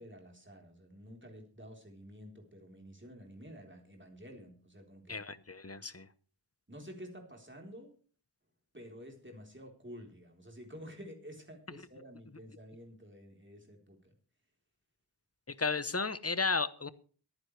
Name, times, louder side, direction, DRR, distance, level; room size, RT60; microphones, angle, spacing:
voice 1, 0.0-5.2 6.7-7.9 8.7-14.1, equal, 25° right, 2 dB, 3.9 m, -50 dB
voice 2, 5.1-6.1 15.5-16.9, left 4 dB, 35° left, 15 dB, 1.0 m, -33 dB
22.5 x 9.8 x 3.3 m, 0.41 s
wide cardioid pair, 55°, 43 cm